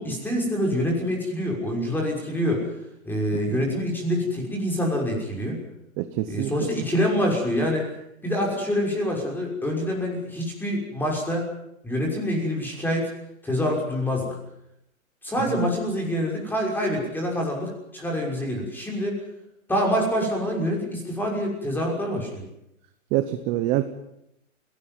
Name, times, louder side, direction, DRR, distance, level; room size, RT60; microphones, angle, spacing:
voice 1, 0.0-2.6 3.0-5.6 6.2-7.8 8.2-11.4 11.8-13.0 13.4-14.3 15.2-19.2 19.7-22.4, equal, 5° left, 0 dB, 6.1 m, -26 dB
voice 2, 6.0-6.7 15.5-15.6 23.1-23.8, right 14 dB, 15° right, 10 dB, 0.8 m, -26 dB
22.5 x 18.0 x 9.6 m, 0.81 s
hypercardioid pair, 150°, 42 cm